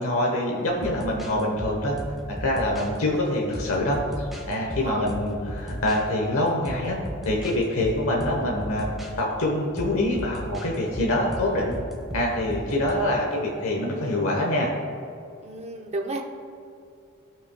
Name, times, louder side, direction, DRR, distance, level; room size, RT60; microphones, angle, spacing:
voice 1, 0.0-2.0 2.3-8.9 9.2-11.8 12.1-14.7, left 1 dB, 70° left, -1 dB, 1.0 m, -25 dB
sound 1, 0.8-3.0 3.5-6.0 6.6-7.6 7.8-9.1 9.8-12.9, equal, ahead, 1.1 m, -36 dB
voice 2, 15.4-16.2, right 2 dB, 30° right, 1 dB, 0.7 m, -32 dB
15.5 x 5.6 x 2.2 m, 2.6 s
head